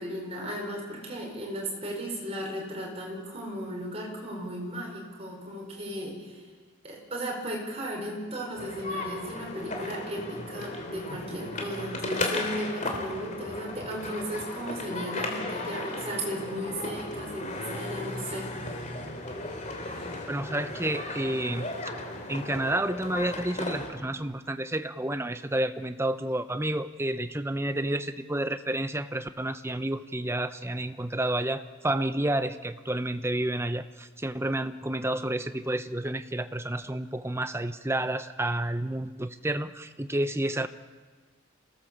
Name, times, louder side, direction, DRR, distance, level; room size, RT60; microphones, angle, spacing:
voice 1, 0.0-6.4 6.8-18.5, right 1 dB, 30° right, -1 dB, 5.7 m, -35 dB
sound 1, 8.6-23.9, left 2 dB, 35° left, 3.1 m, -35 dB
voice 2, 20.3-21.7 22.3-40.7, right 1 dB, 10° right, 10 dB, 0.7 m, -30 dB
27.0 x 17.0 x 7.3 m, 1.4 s
head